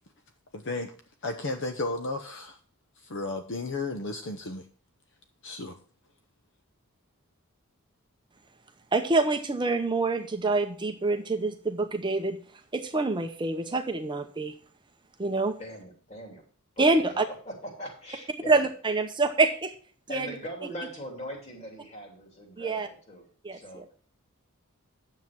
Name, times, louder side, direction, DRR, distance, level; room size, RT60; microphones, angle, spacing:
voice 1, 0.5-0.9 1.2-2.6 3.0-4.7 5.4-5.8, left 2 dB, 60° left, 7 dB, 0.9 m, -33 dB
voice 2, 8.9-12.4 12.7-14.5 15.2-15.5 16.8-17.2 18.5-19.7 20.1-20.3 22.6-22.9 23.4-23.8, right 3 dB, 20° right, 6 dB, 0.7 m, -26 dB
voice 3, 15.6-16.4 17.0-18.7 20.1-23.8, equal, 30° left, 1 dB, 3.0 m, -41 dB
9.7 x 7.5 x 4.6 m, 0.41 s
head